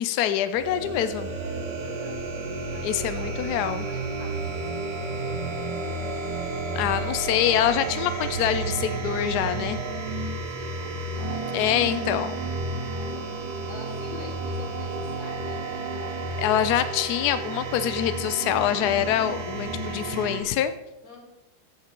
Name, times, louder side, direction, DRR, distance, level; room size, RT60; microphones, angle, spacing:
voice 1, 0.0-1.3 2.8-3.9 6.7-9.8 11.5-12.3 16.4-20.7, left 10 dB, 80° left, 12 dB, 0.9 m, -25 dB
sound 1, 0.5-20.4, right 2 dB, 60° right, 1.8 m, -31 dB
voice 2, 1.2-3.4 3.9-5.8 10.2-13.3 13.6-16.3 21.0-21.2, left 1 dB, 40° left, -5 dB, 5.0 m, -45 dB
14.5 x 8.1 x 3.8 m, 0.97 s
omnidirectional pair, 2.3 m